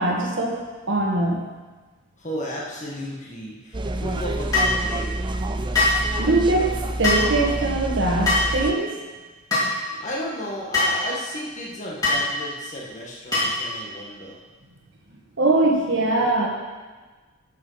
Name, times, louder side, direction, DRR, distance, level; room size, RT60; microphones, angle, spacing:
voice 1, 0.0-1.5 6.2-8.9 15.4-16.5, right 2 dB, 55° right, -2 dB, 1.5 m, -22 dB
voice 2, 2.2-5.1 9.9-14.4, equal, 35° left, -3 dB, 1.6 m, -33 dB
sound 1, 3.7-8.7, right 1 dB, 20° right, 0.4 m, -28 dB
sound 2, 4.5-4.8 5.7-6.0 7.0-7.3 8.3-8.5 9.5-9.7 10.7-11.0 12.0-12.2 13.3-13.6, left 2 dB, 15° left, 3.4 m, -20 dB
11.5 x 6.3 x 5.7 m, 1.3 s
head